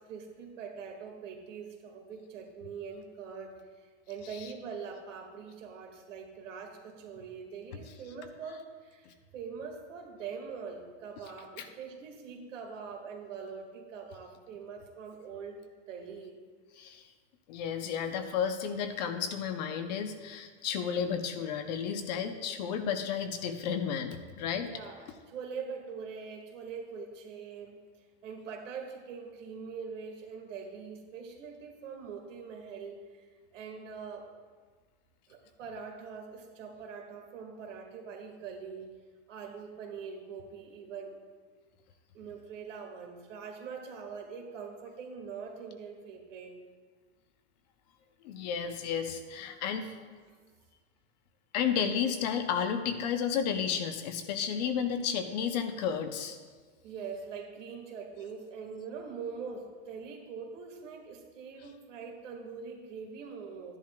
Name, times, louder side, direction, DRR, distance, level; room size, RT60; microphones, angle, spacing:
voice 1, 0.0-15.6 15.9-16.4 24.5-27.8 28.2-33.3 33.5-34.3 35.3-38.9 39.3-41.2 42.1-46.6 56.8-63.8, right 5 dB, 90° right, 3 dB, 1.9 m, -43 dB
voice 2, 16.8-17.1 17.5-24.7 48.2-50.0 51.5-56.4, left 7 dB, 35° left, 8 dB, 0.6 m, -32 dB
13.5 x 10.5 x 2.3 m, 1.5 s
supercardioid pair, 170°, 36 cm